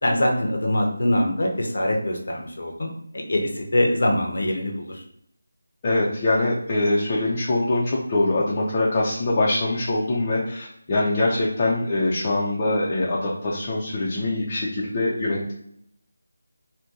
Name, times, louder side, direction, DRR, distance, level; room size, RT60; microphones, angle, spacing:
voice 1, 0.0-2.9 3.1-5.0, left 1 dB, 65° left, 1 dB, 0.7 m, -23 dB
voice 2, 5.8-15.5, left 2 dB, 30° left, -6 dB, 0.5 m, -23 dB
2.7 x 2.2 x 3.5 m, 0.71 s
figure-of-eight pair, 165°, 0 cm